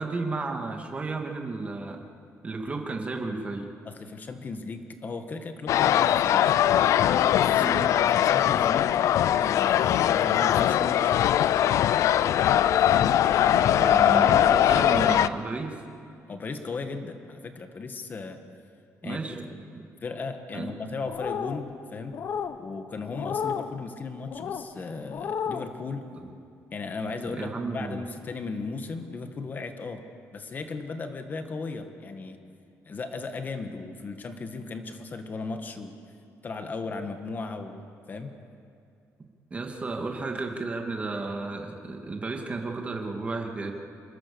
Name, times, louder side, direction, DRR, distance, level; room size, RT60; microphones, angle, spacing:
voice 1, 0.0-2.0 2.4-3.7 7.6-7.9 13.5-15.7 19.0-19.4 19.7-19.8 20.5-20.7 26.2-26.3 27.3-28.0 39.5-43.7, right 3 dB, 25° right, 2 dB, 2.4 m, -33 dB
voice 2, 3.8-6.5 7.3-8.9 9.4-11.2 12.8-13.1 16.3-18.4 19.0-19.4 20.0-22.2 22.6-26.1 26.7-30.0 30.3-32.4 32.9-35.9 36.4-37.8 38.1-38.3, left 4 dB, 35° left, 6 dB, 1.9 m, -36 dB
sound 1, 5.7-15.3, left 11 dB, 70° left, 0.6 m, -21 dB
sound 2, 21.1-21.6 22.1-22.6 23.1-23.7 24.3-24.6 25.1-25.7, left 7 dB, 55° left, 1.1 m, -32 dB
26.0 x 22.0 x 7.1 m, 2.5 s
cardioid pair, 140°, 6 cm